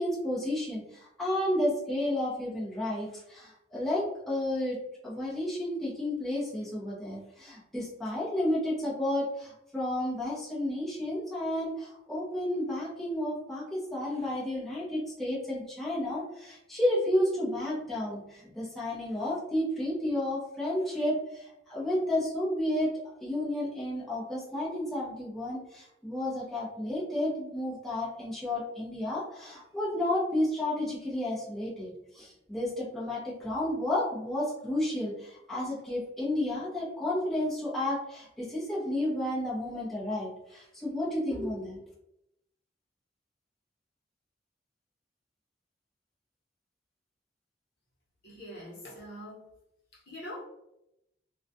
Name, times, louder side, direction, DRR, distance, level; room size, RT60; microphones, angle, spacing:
voice 1, 0.0-4.8 5.0-22.9 23.2-41.9, left 1 dB, ahead, -9 dB, 0.7 m, -31 dB
voice 2, 48.2-49.5 49.9-50.4, equal, 60° left, -5 dB, 0.9 m, -43 dB
2.3 x 2.2 x 2.6 m, 0.83 s
head